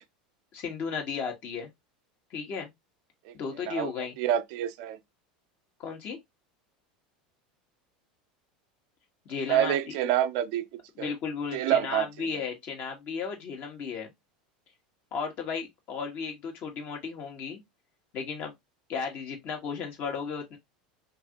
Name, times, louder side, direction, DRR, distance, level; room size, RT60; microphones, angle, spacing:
voice 1, 0.5-1.7 2.3-2.7 3.3-4.1 5.8-6.2 9.2-9.8 11.0-14.1 15.1-17.6 18.1-18.5 18.9-20.6, left 6 dB, 50° left, 1.5 m, -34 dB
voice 2, 3.6-5.0 9.5-11.1 11.5-12.4, right 11 dB, 65° right, 0.5 m, -28 dB
2.9 x 2.6 x 2.9 m
hypercardioid pair, 95°, 4 cm